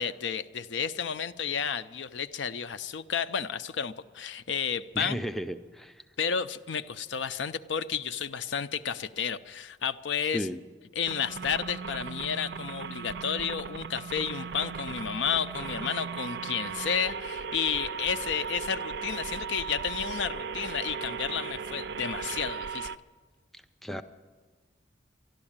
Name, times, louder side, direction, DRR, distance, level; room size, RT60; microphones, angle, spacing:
voice 1, 0.0-5.2 6.2-10.5 11.0-22.9, left 7 dB, 90° left, 12 dB, 0.5 m, -32 dB
voice 2, 4.9-6.0 10.3-10.6 23.5-24.0, equal, ahead, 7 dB, 0.4 m, -35 dB
sound 1, 11.0-23.0, right 6 dB, 65° right, 0.4 m, -37 dB
12.0 x 12.0 x 8.7 m, 1.4 s
head